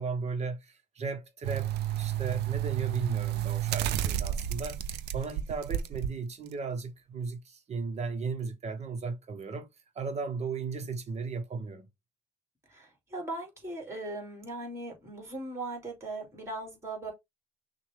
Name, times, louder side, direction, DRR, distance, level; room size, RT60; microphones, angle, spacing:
voice 1, 0.0-4.8 5.1-9.7 9.9-11.9, right 4 dB, 40° right, 1.2 m, -36 dB
sound 1, 1.4-6.1 6.5-6.6, right 12 dB, 80° right, 0.6 m, -31 dB
voice 2, 12.7-17.1, right 2 dB, 15° right, 2.7 m, -39 dB
6.2 x 2.5 x 3.4 m
cardioid pair, 110°, 17 cm